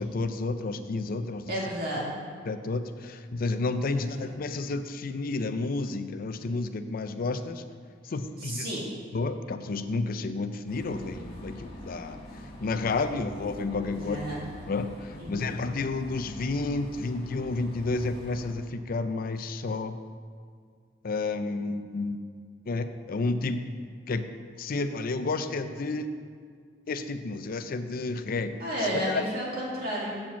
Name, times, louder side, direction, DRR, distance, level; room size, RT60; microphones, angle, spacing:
voice 1, 0.0-1.5 2.4-7.6 8.0-8.7 9.1-12.2 12.6-14.2 14.7-20.0 21.0-22.2 22.7-23.6 24.1-24.2 24.6-26.1 26.9-29.3, left 3 dB, 50° left, 10 dB, 0.5 m, -31 dB
voice 2, 1.5-2.1 3.9-4.2 8.4-8.8 13.9-14.4 15.2-15.5 28.6-30.2, equal, 55° right, -5 dB, 2.3 m, -32 dB
sound 1, 10.7-18.5, left 1 dB, 35° left, 1.6 m, -45 dB
7.3 x 5.0 x 7.0 m, 2.1 s
head